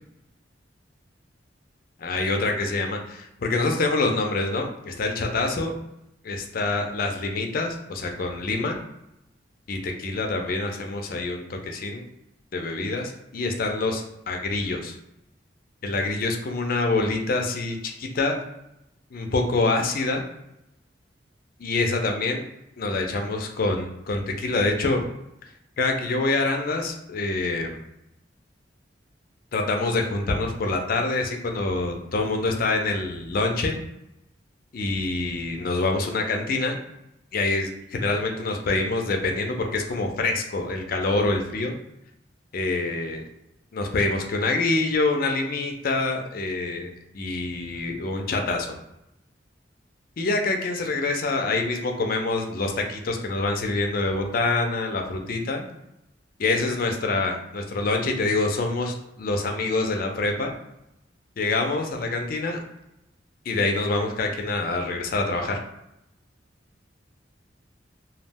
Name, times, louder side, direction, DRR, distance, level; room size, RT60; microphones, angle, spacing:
voice 1, 2.0-5.7 6.2-8.8 9.7-12.0 12.5-14.9 15.8-18.4 19.1-20.2 21.6-22.4 22.8-25.1 25.8-27.8 29.5-33.8 34.7-36.8 37.3-41.7 42.5-43.2 43.7-48.8 50.2-55.6 56.4-60.5 61.4-62.6 63.5-65.6, left 3 dB, 50° left, 3 dB, 0.4 m, -26 dB
2.3 x 2.1 x 3.4 m, 0.84 s
head